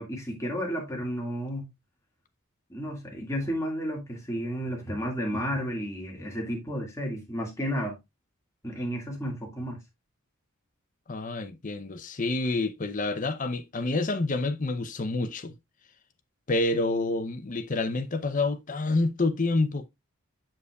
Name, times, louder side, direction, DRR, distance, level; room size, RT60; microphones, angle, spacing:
voice 1, 0.0-1.7 2.7-8.0 8.6-9.8, equal, 15° left, 2.0 m, -32 dB
voice 2, 11.1-15.5 16.5-19.9, left 2 dB, 35° left, 0.7 m, -28 dB
7.4 x 6.7 x 2.4 m
head